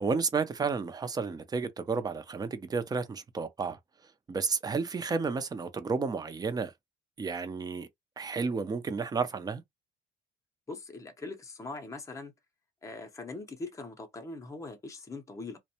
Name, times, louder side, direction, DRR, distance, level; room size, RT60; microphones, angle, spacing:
voice 1, 0.0-6.7 7.2-7.9 8.2-9.6, right 4 dB, 25° right, 0.5 m, -32 dB
voice 2, 10.7-12.3 12.8-15.6, left 3 dB, 20° left, 0.7 m, -41 dB
2.5 x 2.1 x 2.8 m
cardioid pair, 110°, 17 cm